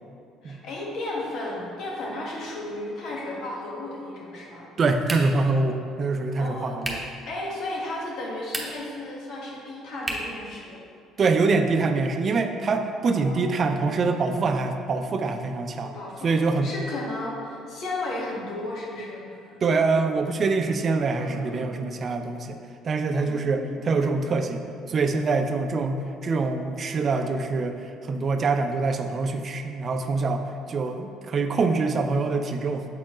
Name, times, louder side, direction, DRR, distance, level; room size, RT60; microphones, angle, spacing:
voice 1, 0.4-4.7 6.4-6.7 7.3-10.8 13.1-13.7 15.8-19.6 21.2-21.8 23.2-23.9, left 2 dB, 65° left, -3 dB, 1.4 m, -34 dB
voice 2, 4.8-7.0 11.2-15.9 16.2-16.7 19.6-22.6 22.8-24.6 24.9-32.9, right 3 dB, 45° right, 6 dB, 0.5 m, -25 dB
sound 1, 5.0-5.5 6.8-7.2 8.4-9.0 10.0-10.4, right 1 dB, 20° right, 1.0 m, -33 dB
7.4 x 4.2 x 3.0 m, 2.4 s
hypercardioid pair, 65°, 0 cm